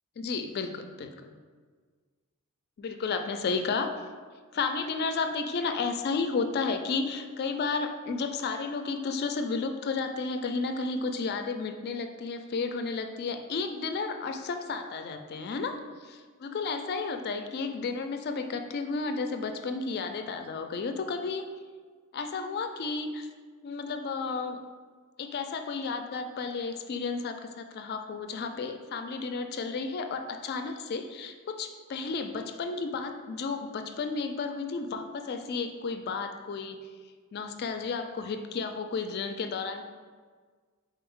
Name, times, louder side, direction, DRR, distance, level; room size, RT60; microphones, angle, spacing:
voice 1, 0.2-1.4 2.8-3.9 4.5-15.8 16.0-21.5 22.1-23.3 23.6-24.6 25.2-36.8 37.3-39.9, left 4 dB, 45° left, 7 dB, 0.3 m, -32 dB
3.8 x 3.4 x 3.6 m, 1.5 s
head